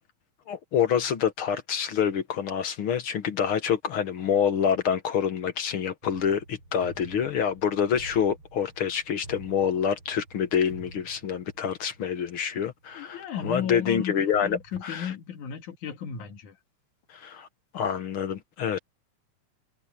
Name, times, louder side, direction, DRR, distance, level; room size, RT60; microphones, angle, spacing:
voice 1, 0.5-14.6 14.8-15.1 17.1-17.5 17.7-18.8, left 8 dB, 55° left, 1.9 m, -27 dB
sound 1, 6.0-13.0 13.4-13.5 14.1-14.8, right 2 dB, 50° right, 8.7 m, -49 dB
voice 2, 13.0-14.1 14.4-16.6, left 8 dB, 80° left, 3.3 m, -34 dB
omnidirectional pair, 3.4 m